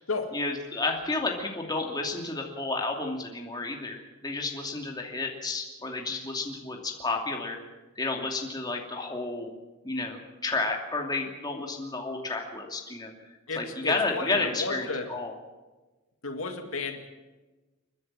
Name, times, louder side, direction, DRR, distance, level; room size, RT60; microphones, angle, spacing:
voice 1, 0.3-7.6 8.0-9.5 9.8-13.1 13.6-15.3, left 3 dB, 20° left, 1 dB, 2.7 m, -31 dB
voice 2, 13.5-15.1 16.2-17.0, left 3 dB, 70° left, 5 dB, 2.1 m, -33 dB
29.5 x 10.5 x 9.0 m, 1.2 s
head